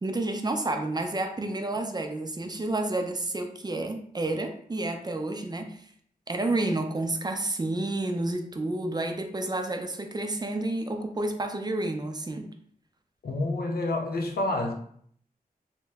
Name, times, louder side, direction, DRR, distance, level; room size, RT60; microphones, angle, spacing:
voice 1, 0.0-5.8 6.3-12.5, right 2 dB, 25° right, 5 dB, 0.4 m, -30 dB
voice 2, 13.2-14.7, left 2 dB, 85° left, 2 dB, 0.5 m, -28 dB
2.9 x 2.1 x 3.4 m, 0.62 s
wide cardioid pair, 65°, 15 cm